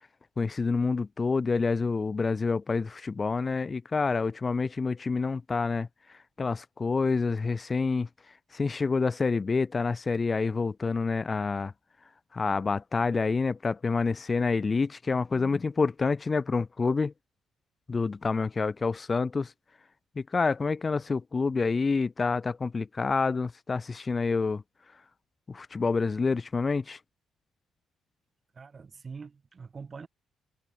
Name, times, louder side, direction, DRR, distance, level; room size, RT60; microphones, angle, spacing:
voice 1, 0.4-5.9 6.4-8.1 8.5-11.7 12.3-17.1 17.9-19.5 20.2-24.6 25.5-27.0, left 4 dB, 30° left, 4.2 m, -28 dB
voice 2, 28.5-30.1, right 5 dB, 35° right, 7.9 m, -44 dB
cardioid pair, 90°, 0 cm